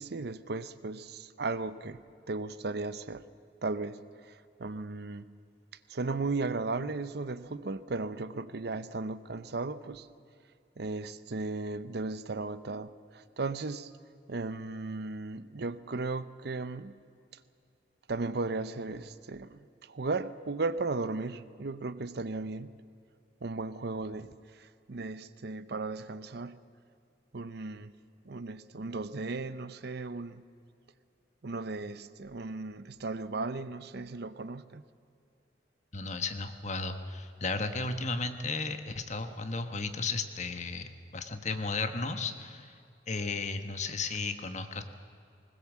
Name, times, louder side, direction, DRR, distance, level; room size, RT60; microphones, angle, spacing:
voice 1, 0.0-3.2 3.6-5.4 5.9-10.1 10.8-13.9 14.3-17.0 18.1-22.7 23.4-26.6 27.3-27.9 28.2-30.5 31.4-34.8, right 3 dB, 65° right, 0.7 m, -36 dB
voice 2, 35.9-42.7 43.1-44.8, left 3 dB, 40° left, 1.3 m, -34 dB
20.0 x 20.0 x 7.4 m
head